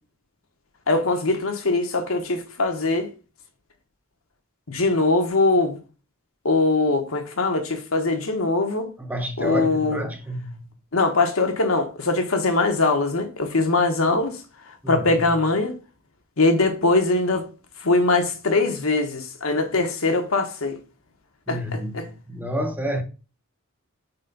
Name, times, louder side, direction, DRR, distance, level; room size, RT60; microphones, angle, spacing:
voice 1, 0.9-3.1 4.7-5.8 6.4-8.9 9.4-10.0 10.9-14.4 14.9-15.7 16.4-17.5 17.8-20.8 21.5-22.1, left 3 dB, 85° left, 1.3 m, -22 dB
voice 2, 9.0-10.6 14.8-15.2 21.5-23.0, equal, 10° right, 0.7 m, -29 dB
4.4 x 4.3 x 5.3 m
head